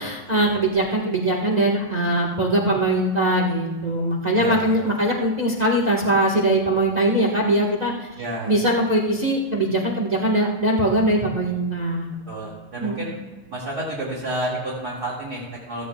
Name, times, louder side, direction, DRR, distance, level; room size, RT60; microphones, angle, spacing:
voice 1, 0.0-8.1 8.5-12.1 12.8-13.1, right 1 dB, 50° right, -2 dB, 0.4 m, -21 dB
voice 2, 4.3-4.7 8.2-8.5 12.3-13.2 13.5-15.9, right 1 dB, 35° right, -6 dB, 2.4 m, -30 dB
16.0 x 14.0 x 2.3 m, 1.2 s
omnidirectional pair, 3.4 m